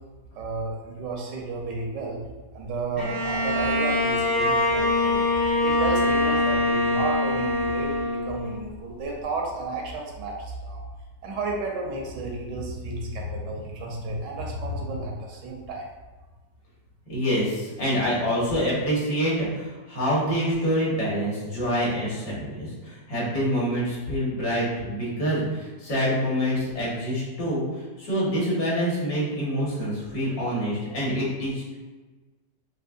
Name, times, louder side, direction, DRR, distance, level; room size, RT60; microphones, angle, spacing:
voice 1, 0.3-2.2 2.5-5.2 5.6-10.8 11.2-15.9, right 3 dB, 85° right, 0 dB, 1.5 m, -32 dB
Bowed string instrument, 3.0-8.7, left 2 dB, 25° left, 0.5 m, -24 dB
voice 2, 17.1-27.6 28.0-31.8, equal, 70° left, -6 dB, 2.2 m, -26 dB
6.6 x 2.8 x 2.6 m, 1.3 s
omnidirectional pair, 1.9 m